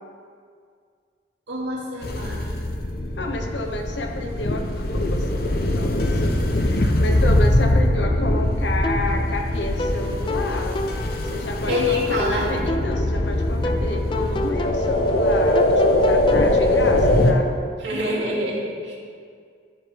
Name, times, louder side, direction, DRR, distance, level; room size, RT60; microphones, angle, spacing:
voice 1, 1.5-2.6 11.7-12.5 17.8-19.0, left 1 dB, 85° right, -4 dB, 2.4 m, -26 dB
sound 1, 2.0-17.3, left 1 dB, 55° left, 0.8 m, -22 dB
voice 2, 3.2-10.8 11.2-17.5, left 1 dB, 85° left, 3 dB, 1.1 m, -30 dB
sound 2, 8.8-16.5, left 2 dB, 25° left, 0.4 m, -30 dB
14.5 x 6.8 x 3.4 m, 2.1 s
head